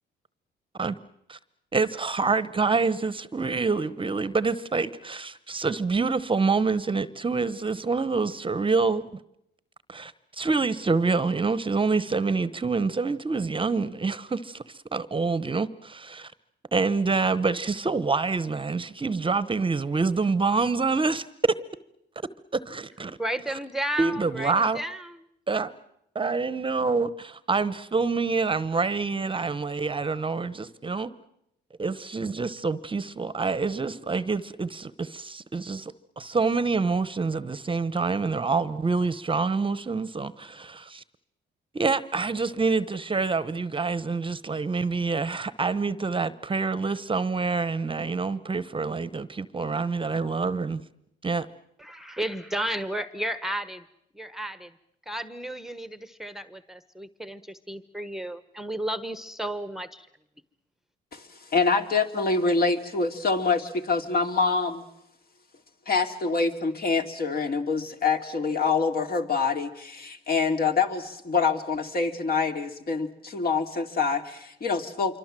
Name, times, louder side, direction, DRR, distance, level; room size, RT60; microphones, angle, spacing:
voice 1, 1.7-9.0 9.9-16.3 16.7-21.3 22.5-23.2 24.0-24.8 25.5-25.7 26.2-31.1 31.8-41.0 41.7-50.8 51.2-51.5, right 4 dB, 25° right, 1.0 m, -26 dB
voice 2, 23.2-25.1 51.8-53.8 54.1-54.7 55.1-60.1, right 1 dB, ahead, 1.1 m, -33 dB
voice 3, 61.1-64.8 65.9-75.2, left 4 dB, 50° left, 2.7 m, -26 dB
27.0 x 24.5 x 7.6 m
cardioid pair, 90°, 20 cm